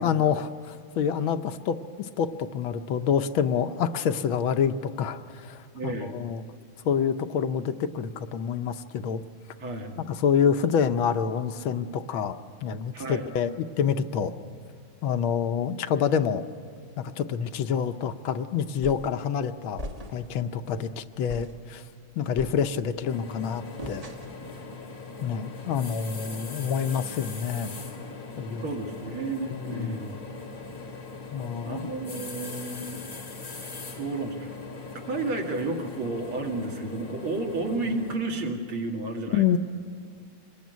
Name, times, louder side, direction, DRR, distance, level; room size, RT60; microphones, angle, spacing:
voice 1, 0.0-6.4 6.8-9.2 10.1-12.4 12.6-14.3 15.0-16.4 17.0-19.8 20.1-21.8 22.2-24.1 25.2-27.8 28.4-28.7 29.5-30.0 31.3-31.9 39.3-39.6, left 7 dB, 75° left, 9 dB, 1.6 m, -27 dB
voice 2, 5.7-6.2 9.6-10.0 12.9-13.3 28.6-30.1 31.6-33.0 34.0-34.5 35.1-39.4, right 2 dB, 90° right, 2 dB, 3.1 m, -32 dB
sound 1, 18.8-19.2 19.8-20.4 20.8-20.9 21.3-21.6 22.4-23.0 23.8-24.5, equal, 25° right, 1.1 m, -40 dB
sound 2, 23.1-38.2, left 3 dB, 40° left, 3.0 m, -40 dB
24.5 x 20.0 x 9.4 m, 2.1 s
omnidirectional pair, 2.2 m